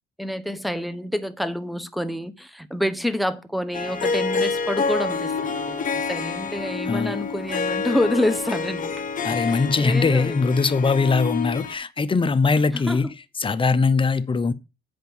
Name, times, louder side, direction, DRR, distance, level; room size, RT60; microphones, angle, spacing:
voice 1, 0.2-9.1 9.3-10.4 12.7-13.1, left 1 dB, ahead, 0.9 m, -28 dB
Harp, 3.7-11.7, left 5 dB, 40° left, 1.1 m, -27 dB
voice 2, 9.2-13.0 13.4-14.5, left 4 dB, 25° left, 0.8 m, -21 dB
8.2 x 5.2 x 6.1 m
cardioid pair, 90°, 20 cm